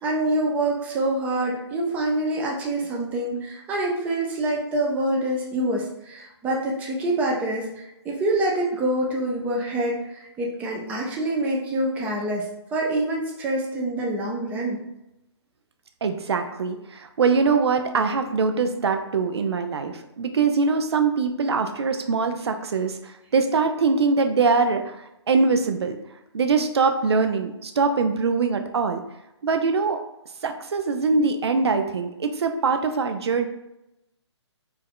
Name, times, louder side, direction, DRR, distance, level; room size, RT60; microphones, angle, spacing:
voice 1, 0.0-12.5 12.7-14.8, right 1 dB, 10° right, -2 dB, 0.5 m, -26 dB
voice 2, 16.0-26.0 26.3-29.0 29.4-30.0 30.4-33.5, right 4 dB, 65° right, 6 dB, 0.6 m, -23 dB
4.5 x 2.6 x 3.6 m, 0.88 s
figure-of-eight pair, 145°, 15 cm